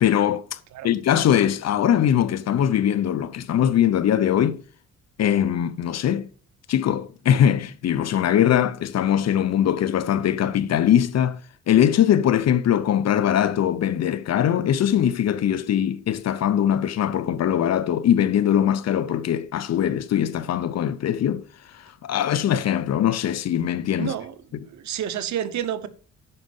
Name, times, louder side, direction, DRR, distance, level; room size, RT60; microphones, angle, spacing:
voice 1, 0.0-0.6 0.8-4.6 5.2-6.3 6.7-11.4 11.7-21.5 21.7-24.1 24.5-24.6, left 10 dB, 60° left, 0.8 m, -21 dB
voice 2, 24.0-24.3 24.7-25.9, right 10 dB, 70° right, 1.0 m, -29 dB
10.0 x 5.2 x 5.3 m
cardioid pair, 90°, 30 cm